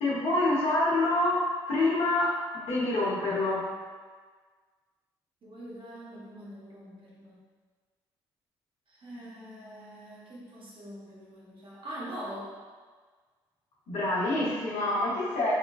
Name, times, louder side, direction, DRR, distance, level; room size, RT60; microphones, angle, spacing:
voice 1, 0.0-1.4 1.7-2.3 2.5-3.6 13.9-15.5, left 2 dB, 65° left, -7 dB, 1.0 m, -26 dB
voice 2, 5.4-7.4 9.0-12.5, equal, 45° right, -6 dB, 1.1 m, -43 dB
3.6 x 2.2 x 2.3 m, 1.5 s
hypercardioid pair, 45°, 12 cm